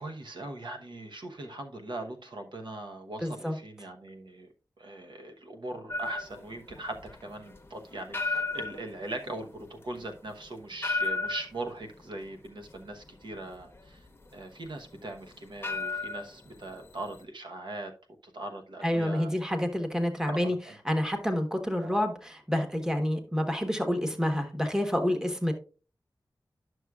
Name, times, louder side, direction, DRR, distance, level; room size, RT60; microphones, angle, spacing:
voice 1, 0.0-4.5 4.8-17.9 18.2-19.3 20.3-20.7 21.8-22.0, right 2 dB, 75° right, 4 dB, 1.0 m, -40 dB
voice 2, 3.2-3.5 18.8-20.6 20.8-25.5, left 1 dB, 5° right, 5 dB, 1.1 m, -28 dB
sound 1, 5.9-17.2, left 3 dB, 30° left, 0.8 m, -36 dB
11.0 x 6.2 x 2.3 m, 0.35 s
wide cardioid pair, 105°, 8 cm